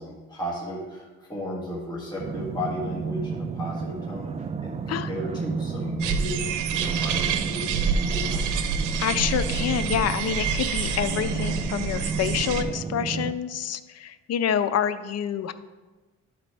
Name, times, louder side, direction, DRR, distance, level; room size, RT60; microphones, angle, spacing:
voice 1, 0.0-4.3 4.6-8.5, left 1 dB, 15° left, -5 dB, 1.6 m, -34 dB
sound 1, 2.2-13.3, right 5 dB, 25° right, 0.3 m, -32 dB
sound 2, 6.0-12.6, right 6 dB, 85° right, 0.7 m, -28 dB
voice 2, 9.0-15.5, left 9 dB, 55° left, 12 dB, 0.5 m, -27 dB
12.0 x 4.0 x 3.3 m, 1.2 s
cardioid pair, 90°, 30 cm